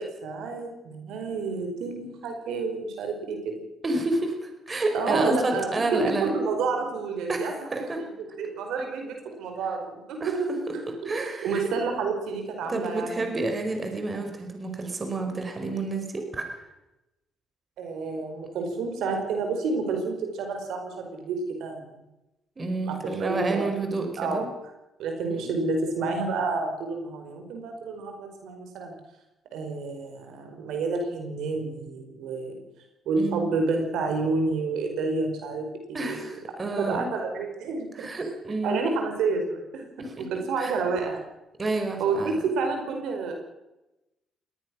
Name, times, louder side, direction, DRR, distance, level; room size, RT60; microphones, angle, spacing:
voice 1, 0.0-3.6 4.9-10.4 10.7-11.1 11.4-13.3 17.8-21.9 22.8-23.7 24.2-24.5 25.0-29.0 29.5-32.6 33.0-36.3 36.8-38.1 38.6-39.9 40.2-41.2 42.0-43.4, right 4 dB, 85° right, 4 dB, 4.9 m, -29 dB
voice 2, 3.8-6.3 7.3-7.5 7.7-8.0 10.2-10.3 11.0-11.6 12.7-16.5 22.6-24.5 25.3-25.5 33.2-33.5 35.9-37.1 37.9-38.8 40.0-40.2 40.6-40.7 41.6-42.4, right 2 dB, 30° right, 4 dB, 5.1 m, -29 dB
21.5 x 19.0 x 6.4 m, 0.96 s
cardioid pair, 90°, 0 cm